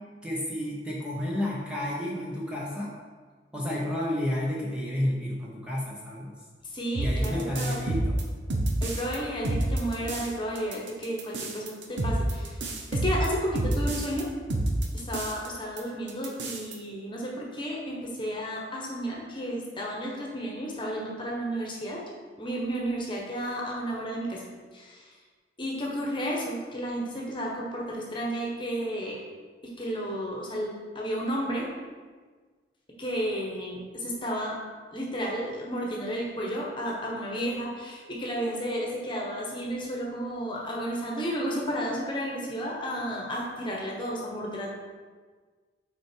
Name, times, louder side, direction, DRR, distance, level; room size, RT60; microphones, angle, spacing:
voice 1, 0.2-2.9 3.5-6.3 7.0-8.2, left 1 dB, 5° right, -5 dB, 0.8 m, -31 dB
voice 2, 6.7-7.8 8.8-12.6 12.9-14.3 14.9-22.0 22.4-24.4 24.7-25.1 25.6-29.2 29.6-31.7 33.0-34.6 34.9-44.7, equal, 25° left, -2 dB, 1.2 m, -32 dB
sound 1, 6.9-9.2 9.4-10.3 10.5-14.2 14.5-15.5 15.8-15.9 16.1-16.7, right 1 dB, 90° right, 0.9 m, -28 dB
6.2 x 4.6 x 4.5 m, 1.5 s
head